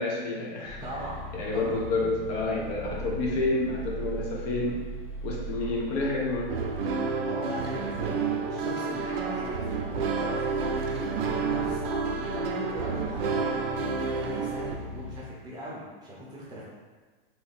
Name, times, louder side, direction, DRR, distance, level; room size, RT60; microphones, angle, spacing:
voice 1, 0.0-1.1 1.3-4.8 5.2-6.5, left 2 dB, 40° left, -3 dB, 0.8 m, -29 dB
sound 1, 0.6-15.2, right 1 dB, 70° left, 1.1 m, -40 dB
voice 2, 0.8-1.8 7.2-10.8 11.4-13.9 14.1-16.6, equal, 15° right, -6 dB, 0.8 m, -40 dB
sound 2, 6.5-14.8, right 4 dB, 70° right, 0.6 m, -30 dB
3.0 x 2.7 x 4.1 m, 1.3 s
hypercardioid pair, 135°, 30 cm